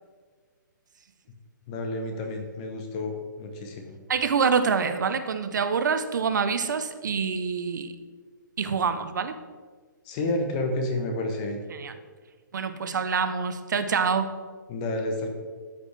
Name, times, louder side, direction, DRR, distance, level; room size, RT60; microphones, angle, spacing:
voice 1, 1.7-3.9 10.0-11.6 14.7-15.3, left 2 dB, 20° left, 4 dB, 0.8 m, -30 dB
voice 2, 4.1-7.9 8.6-9.4 11.8-11.9 12.5-14.3, right 5 dB, 65° right, 10 dB, 0.7 m, -26 dB
13.0 x 5.0 x 3.3 m, 1.5 s
hypercardioid pair, 170°, 11 cm